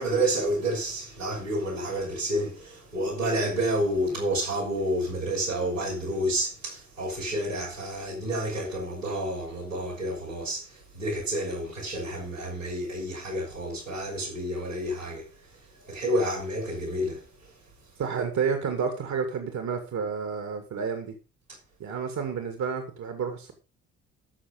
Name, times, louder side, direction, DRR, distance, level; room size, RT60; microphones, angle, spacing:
voice 1, 0.0-15.3 15.8-17.3, right 1 dB, 90° right, 4.7 m, -29 dB
voice 2, 18.0-21.1 21.8-23.5, right 6 dB, 50° right, 2.3 m, -30 dB
14.0 x 6.5 x 5.1 m
figure-of-eight pair, 45°, 37 cm